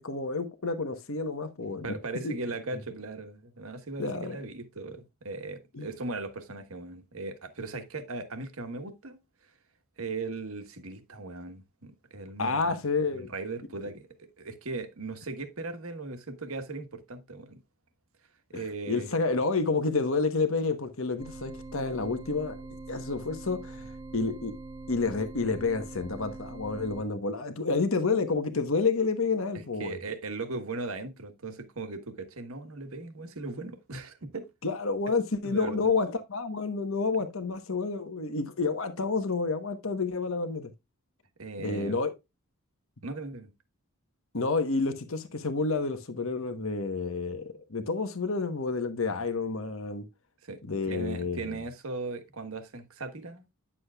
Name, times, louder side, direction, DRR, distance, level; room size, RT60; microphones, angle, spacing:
voice 1, 0.0-1.9 2.2-2.3 4.0-4.4 5.7-5.9 12.4-13.3 18.5-18.6 18.9-22.6 22.9-24.5 24.9-30.0 34.6-40.7 41.6-42.1 44.3-50.0 50.6-51.6, left 4 dB, 60° left, 1.1 m, -29 dB
voice 2, 1.8-9.2 10.0-12.8 13.1-17.6 18.5-19.1 29.5-34.5 35.4-35.9 41.4-42.0 43.0-43.5 50.4-53.5, right 3 dB, 65° right, 1.3 m, -38 dB
sound 1, 21.2-27.0, right 3 dB, 15° right, 1.1 m, -43 dB
10.0 x 7.3 x 2.3 m
head